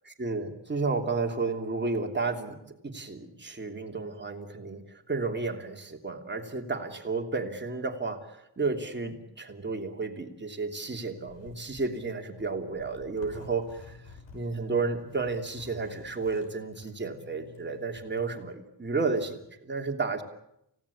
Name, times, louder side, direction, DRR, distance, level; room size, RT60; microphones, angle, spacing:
voice 1, 0.0-14.0 14.3-20.2, right 4 dB, 25° right, 3 dB, 3.0 m, -32 dB
Zipper (clothing), 11.0-18.3, left 3 dB, 85° left, 5.8 m, -51 dB
29.0 x 17.0 x 8.5 m, 0.79 s
wide cardioid pair, 120°, 43 cm